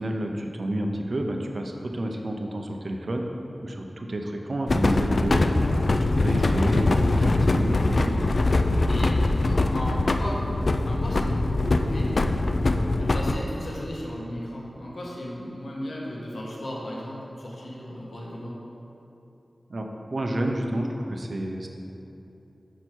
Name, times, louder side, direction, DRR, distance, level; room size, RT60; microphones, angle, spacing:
voice 1, 0.0-3.2 3.6-8.2 19.7-21.7, right 1 dB, 60° right, 3 dB, 0.7 m, -30 dB
sound 1, 4.7-13.4, left 2 dB, 60° left, 0.3 m, -23 dB
voice 2, 9.4-10.6 10.9-12.1 13.0-18.6, left 1 dB, 80° left, -4 dB, 1.3 m, -35 dB
6.2 x 5.5 x 4.5 m, 3.0 s
wide cardioid pair, 70°, 0 cm